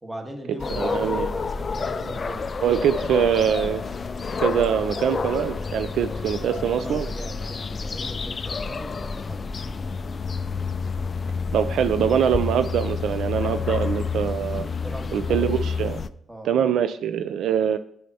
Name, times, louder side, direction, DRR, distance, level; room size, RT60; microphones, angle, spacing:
voice 1, 0.0-2.5 6.2-6.5 6.8-9.4 14.8-15.5 16.3-16.5, right 1 dB, 10° right, 2 dB, 1.4 m, -38 dB
sound 1, 0.6-16.1, left 5 dB, 35° left, 0.3 m, -29 dB
voice 2, 0.7-1.3 2.6-3.8 4.4-7.1 11.5-14.7 15.1-16.0 16.4-17.8, right 8 dB, 70° right, 10 dB, 0.3 m, -23 dB
Wind instrument woodwind instrument, 3.3-7.8, left 3 dB, 50° right, 1.9 m, -50 dB
9.3 x 5.5 x 2.8 m, 0.68 s
cardioid pair, 90°, 0 cm